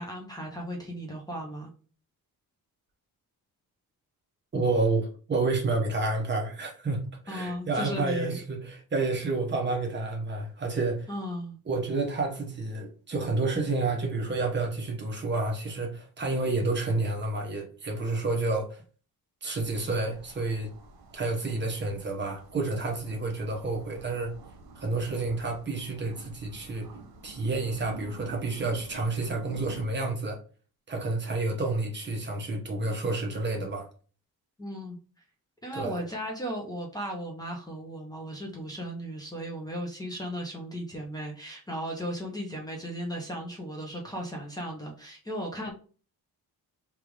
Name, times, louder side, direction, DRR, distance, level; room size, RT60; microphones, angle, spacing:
voice 1, 0.0-1.7 7.3-8.4 11.1-11.6 34.6-35.0 35.6-45.7, equal, 10° left, 0.7 m, -36 dB
voice 2, 4.5-11.1 11.7-18.8 19.4-20.7 21.1-24.3 24.8-26.9 27.2-30.4 30.9-33.9 35.7-36.0, right 3 dB, 30° right, 0.8 m, -29 dB
sound 1, 19.6-29.9, right 2 dB, 80° right, 0.9 m, -48 dB
3.5 x 2.4 x 4.5 m
wide cardioid pair, 170°, 36 cm